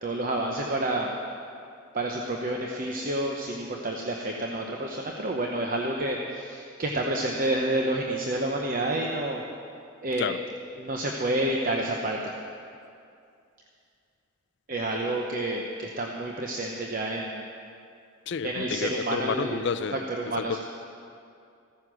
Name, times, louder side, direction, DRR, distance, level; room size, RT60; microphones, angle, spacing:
voice 1, 0.0-1.1 1.9-9.4 10.0-10.3 10.8-12.3 14.7-17.4 18.4-19.7 19.9-20.6, right 1 dB, 45° right, 0 dB, 0.8 m, -29 dB
voice 2, 18.3-20.0 20.4-20.6, left 6 dB, 60° left, 13 dB, 0.4 m, -30 dB
15.0 x 9.6 x 6.2 m, 2.5 s
head